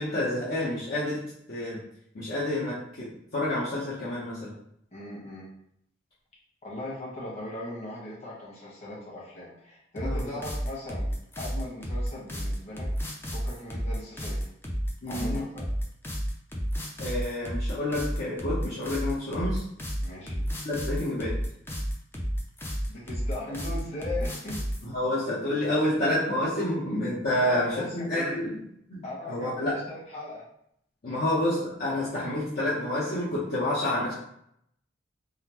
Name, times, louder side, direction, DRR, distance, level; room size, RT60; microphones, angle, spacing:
voice 1, 0.0-1.8 2.1-4.5 10.0-10.3 15.0-15.5 17.0-19.6 20.6-21.4 24.8-28.6 28.9-29.8 31.0-34.1, left 1 dB, 50° left, -10 dB, 0.8 m, -29 dB
voice 2, 4.9-5.5 6.6-11.1 11.4-12.9 13.3-14.5 15.1-15.7 20.0-20.5 22.9-24.6 27.4-28.4 29.0-30.4 31.1-31.2, left 1 dB, 35° left, -7 dB, 1.3 m, -38 dB
sound 1, 10.0-24.8, equal, 10° left, 0.5 m, -31 dB
3.6 x 2.1 x 2.9 m, 0.72 s
head